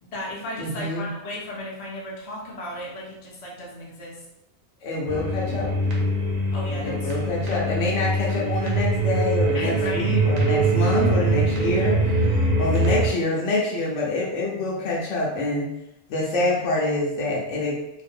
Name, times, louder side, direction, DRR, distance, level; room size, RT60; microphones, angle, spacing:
voice 1, 0.0-4.2 6.5-7.1 7.7-8.0 9.5-10.3 11.6-12.0 12.5-13.0, left 1 dB, 45° left, -4 dB, 0.5 m, -35 dB
voice 2, 0.6-1.1 4.8-5.7 6.8-12.0 12.6-15.7 16.1-17.8, left 2 dB, 70° left, -3 dB, 0.8 m, -26 dB
sound 1, 5.1-13.1, right 2 dB, 80° right, 1.1 m, -23 dB
2.5 x 2.0 x 2.5 m, 0.86 s
omnidirectional pair, 1.4 m